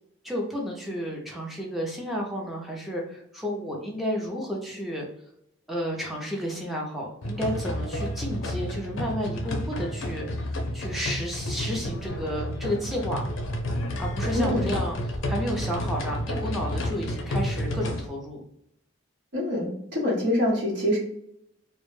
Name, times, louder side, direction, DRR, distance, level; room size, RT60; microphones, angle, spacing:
voice 1, 0.2-5.0 5.7-10.5 10.7-13.2 14.0-18.4, equal, ahead, -2 dB, 0.5 m, -32 dB
sound 1, 7.2-18.1, equal, 65° left, 0.5 m, -30 dB
voice 2, 14.3-14.7 19.3-21.0, left 1 dB, 60° right, -3 dB, 0.9 m, -25 dB
2.1 x 2.0 x 3.0 m, 0.74 s
head